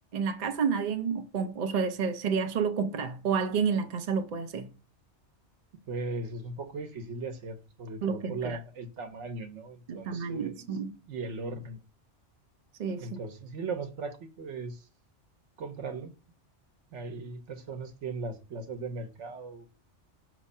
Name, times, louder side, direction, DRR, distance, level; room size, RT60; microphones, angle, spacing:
voice 1, 0.1-4.7 8.0-8.6 9.9-11.0 12.8-13.2, right 6 dB, 50° right, 0.6 m, -30 dB
voice 2, 5.9-10.8 11.1-11.8 13.0-14.8 15.6-16.1 16.9-19.7, right 3 dB, 75° right, 1.2 m, -38 dB
6.1 x 3.1 x 5.4 m
omnidirectional pair, 1.2 m